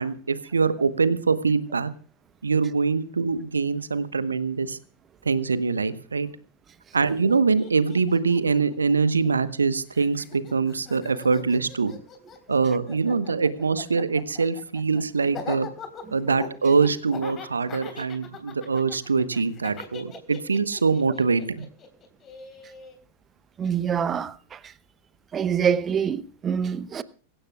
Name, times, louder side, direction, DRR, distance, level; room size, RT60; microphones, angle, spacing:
voice 1, 0.0-1.9 2.4-4.8 5.2-6.3 6.9-11.9 12.5-15.7 16.1-21.6, right 4 dB, 75° right, 1.1 m, -23 dB
Laughter, 7.0-7.1 7.3-9.6 9.9-23.0, left 6 dB, 30° left, 3.9 m, -41 dB
voice 2, 23.6-24.7 25.3-27.0, right 7 dB, 25° right, 1.0 m, -25 dB
24.0 x 16.0 x 2.4 m
figure-of-eight pair, 90°, 0 cm